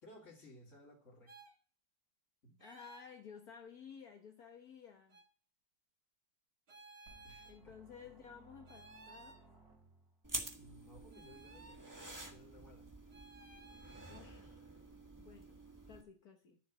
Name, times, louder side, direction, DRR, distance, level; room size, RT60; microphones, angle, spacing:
voice 1, 0.0-1.3 2.4-2.7 7.2-7.8 10.5-11.9 12.3-12.9, left 1 dB, 45° left, -6 dB, 3.3 m, -59 dB
sound 1, 1.3-1.5 2.6-3.1 5.1-5.3 6.7-7.6 8.7-9.4 11.1-11.8 13.1-14.2, right 2 dB, 40° right, 1.6 m, -57 dB
voice 2, 2.6-5.2 7.5-9.4 14.1-14.6 15.2-15.6 15.9-16.6, left 7 dB, 65° left, 3 dB, 1.7 m, -54 dB
sound 2, 7.1-10.3, right 2 dB, 65° right, 3.3 m, -62 dB
sound 3, 10.2-16.0, right 1 dB, 10° right, 1.5 m, -48 dB
12.5 x 7.3 x 8.5 m, 0.43 s
omnidirectional pair, 1.8 m